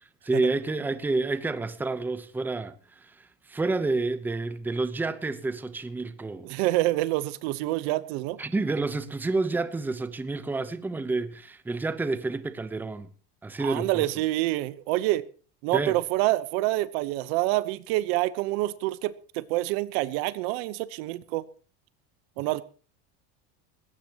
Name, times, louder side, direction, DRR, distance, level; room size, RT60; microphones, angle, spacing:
voice 1, 0.2-6.5 8.4-13.1 13.4-14.1 15.7-16.0, right 3 dB, 5° right, 0.8 m, -29 dB
voice 2, 6.4-8.4 13.6-15.2 15.6-21.4 22.4-22.6, right 17 dB, 65° right, 1.1 m, -27 dB
20.0 x 17.0 x 3.0 m
supercardioid pair, 150°, 33 cm